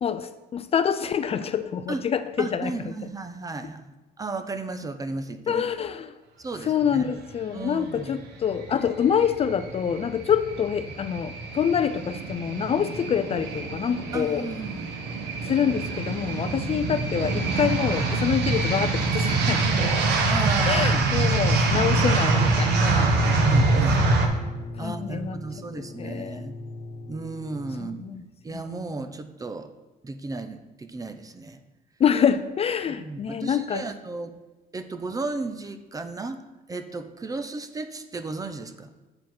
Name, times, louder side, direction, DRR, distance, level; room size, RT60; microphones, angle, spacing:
voice 1, 0.0-2.7 5.5-6.1 6.6-14.5 15.4-19.9 20.7-23.2 24.8-25.4 25.8-26.5 27.8-28.2 28.5-28.8 32.0-33.8, left 8 dB, 35° left, 11 dB, 0.4 m, -26 dB
voice 2, 2.4-5.6 6.4-7.1 7.5-8.2 14.1-14.9 20.3-21.6 22.8-24.1 24.8-26.5 27.1-28.0 28.4-29.7 30.0-31.6 32.9-34.3 34.7-36.4 36.7-38.9, right 3 dB, 20° right, 9 dB, 0.7 m, -34 dB
sound 1, 8.5-24.3, right 3 dB, 80° right, 1.3 m, -24 dB
sound 2, 21.6-28.4, left 2 dB, 80° left, 1.1 m, -38 dB
8.6 x 4.8 x 5.9 m, 1.1 s
cardioid pair, 110°, 17 cm